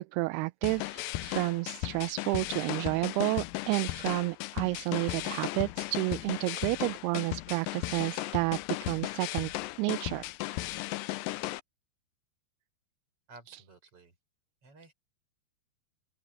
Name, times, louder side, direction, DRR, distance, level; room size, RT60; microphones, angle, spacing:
voice 1, 0.0-9.5 9.8-10.3 13.5-13.6, right 22 dB, 85° right, 2.5 m, -31 dB
sound 1, 0.6-11.6, left 18 dB, 85° left, 2.0 m, -36 dB
voice 2, 13.3-14.1 14.6-14.9, right 3 dB, 35° right, 6.2 m, -54 dB
open air
omnidirectional pair, 4.6 m